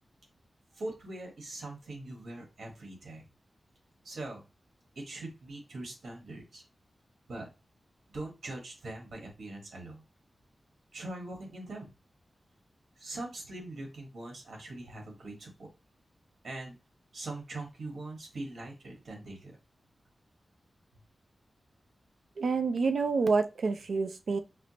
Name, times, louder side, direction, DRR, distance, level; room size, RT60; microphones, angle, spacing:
voice 1, 0.7-3.2 4.0-4.4 4.9-6.6 7.3-7.5 8.1-10.0 10.9-11.9 13.0-15.7 16.4-16.8 17.1-19.6, right 2 dB, 90° right, 1 dB, 1.2 m, -42 dB
voice 2, 22.4-24.4, right 4 dB, 75° right, 8 dB, 0.4 m, -28 dB
4.4 x 2.0 x 2.8 m, 0.28 s
wide cardioid pair, 130°, 0 cm